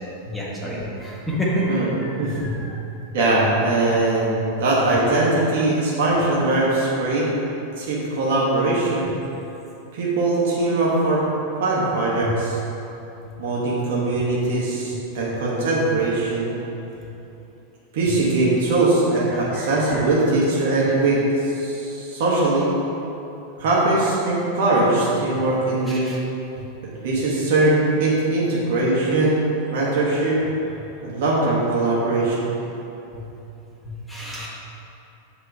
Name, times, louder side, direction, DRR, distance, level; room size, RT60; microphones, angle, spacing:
voice 1, 0.2-2.6 12.2-12.3 19.3-20.0 20.8-20.9 25.9-26.2 33.8-34.5, equal, 5° left, -6 dB, 1.5 m, -29 dB
voice 2, 3.1-7.3 7.8-9.1 9.9-11.2 11.6-12.6 13.4-16.5 17.9-22.7 23.6-26.2 27.0-29.4 29.7-30.4 31.0-32.5, right 2 dB, 55° right, -6 dB, 1.2 m, -21 dB
7.2 x 3.6 x 4.7 m, 2.9 s
figure-of-eight pair, 90°, 0 cm